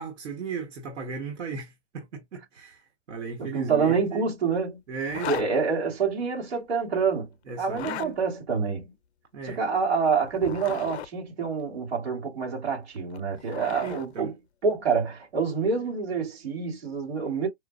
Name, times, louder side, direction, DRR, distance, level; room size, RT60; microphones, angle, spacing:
voice 1, 0.0-4.2 4.9-5.5 7.5-8.1 9.3-9.6 13.4-13.5 13.8-14.3, right 5 dB, 90° right, 1.3 m, -36 dB
voice 2, 3.4-4.8 5.3-7.3 7.6-8.9 9.4-14.3 14.6-17.5, right 5 dB, 60° right, 2.4 m, -27 dB
Zipper (clothing), 5.1-5.5 7.6-8.1 10.2-11.1 13.0-14.1, left 11 dB, 65° left, 0.5 m, -36 dB
4.9 x 2.0 x 2.4 m
hypercardioid pair, 165°, 36 cm